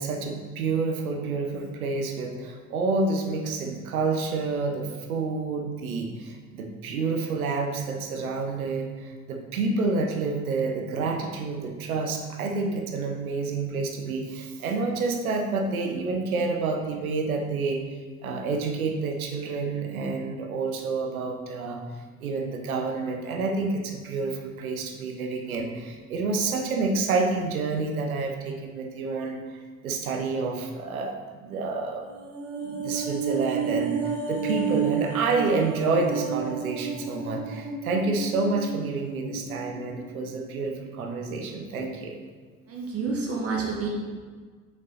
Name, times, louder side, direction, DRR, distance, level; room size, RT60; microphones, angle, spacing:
voice 1, 0.0-17.8 18.2-21.8 22.2-32.0 32.6-42.2, right 3 dB, 75° right, 3 dB, 0.8 m, -29 dB
sound 1, 32.0-40.5 40.8-40.9, right 6 dB, 55° right, 1.3 m, -31 dB
voice 2, 42.7-43.9, right 4 dB, 35° right, -2 dB, 1.0 m, -29 dB
6.6 x 5.1 x 2.8 m, 1.5 s
figure-of-eight pair, 65°, 43 cm